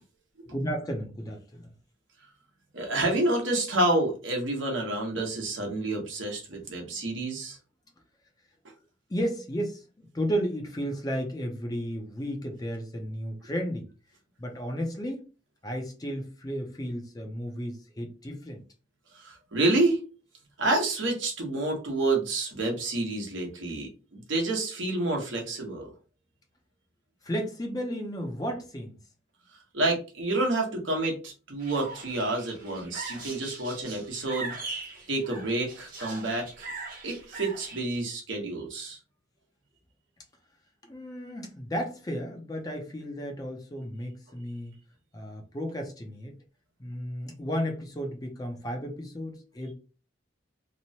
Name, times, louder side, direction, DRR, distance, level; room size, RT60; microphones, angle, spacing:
voice 1, 0.5-1.7 9.1-13.9 14.4-15.2 15.6-18.6 27.2-29.0 40.8-44.7 45.1-46.3 46.8-49.7, equal, 20° left, 0.5 m, -33 dB
voice 2, 2.7-7.6 19.1-20.0 20.6-25.9 29.7-34.5 35.1-36.7 37.0-39.0, right 2 dB, 70° right, 0.9 m, -28 dB
sound 1, 31.6-37.8, right 3 dB, 45° right, 0.9 m, -41 dB
2.9 x 2.1 x 2.7 m
head